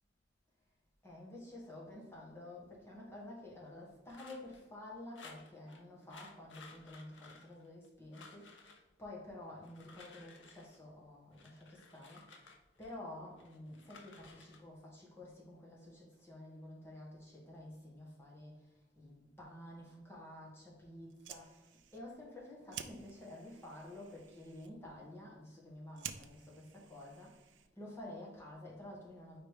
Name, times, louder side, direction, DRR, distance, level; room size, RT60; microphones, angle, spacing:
voice 1, 1.0-29.4, left 1 dB, 15° left, -5 dB, 1.9 m, -51 dB
sound 1, 4.1-4.6 5.1-5.8 6.1-7.9 8.1-8.8 9.5-10.8 11.3-13.0 13.4-14.6, left 4 dB, 75° left, 1.0 m, -57 dB
Fire, 21.0-27.9, right 9 dB, 70° right, 0.5 m, -52 dB
5.1 x 4.3 x 4.9 m, 1.0 s
head